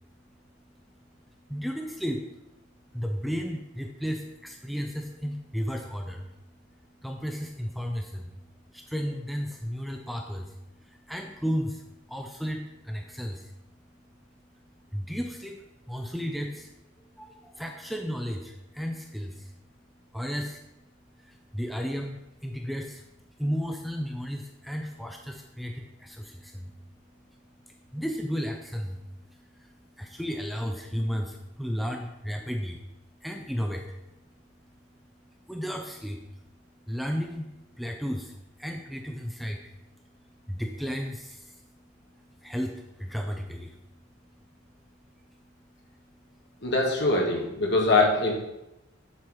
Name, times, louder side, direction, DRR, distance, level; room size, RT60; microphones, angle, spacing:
voice 1, 1.5-2.3 2.9-6.3 7.0-8.3 8.7-11.8 12.1-13.5 14.9-19.6 20.1-20.6 21.2-23.1 23.4-26.9 27.3-32.9 33.2-34.0 35.4-36.4 36.8-41.7 42.1-43.8 45.3-46.6, equal, ahead, 2 dB, 0.5 m, -34 dB
voice 2, 46.6-48.3, left 2 dB, 55° left, 0 dB, 1.7 m, -23 dB
7.2 x 4.7 x 6.2 m, 0.91 s
head